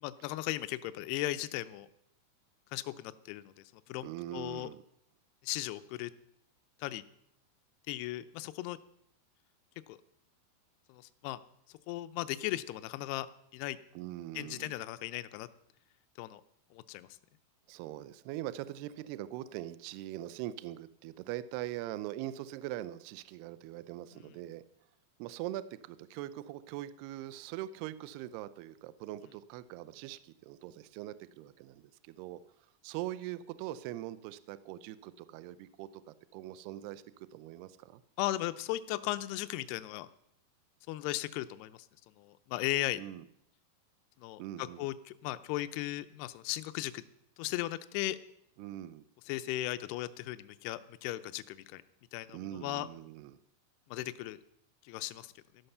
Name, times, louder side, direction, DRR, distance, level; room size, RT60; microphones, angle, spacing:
voice 1, 0.0-1.9 2.7-3.5 3.9-4.7 5.4-6.1 6.8-7.0 7.9-8.8 9.9-10.0 10.9-11.4 11.9-13.3 13.5-13.8 14.4-15.5 16.2-16.4 16.7-17.1 24.2-24.3 38.2-40.1 40.9-41.8 42.2-43.0 44.2-47.0 47.4-48.2 49.3-51.8 52.1-52.9 53.9-54.4 54.9-55.3, left 16 dB, 85° left, 12 dB, 2.3 m, -37 dB
voice 2, 4.0-4.8 14.0-14.7 17.7-24.6 25.2-32.4 32.8-38.0 43.0-43.2 44.4-44.9 48.6-49.0 52.3-53.4, right 14 dB, 85° right, 15 dB, 2.3 m, -42 dB
13.5 x 11.5 x 6.7 m, 0.73 s
omnidirectional pair, 5.4 m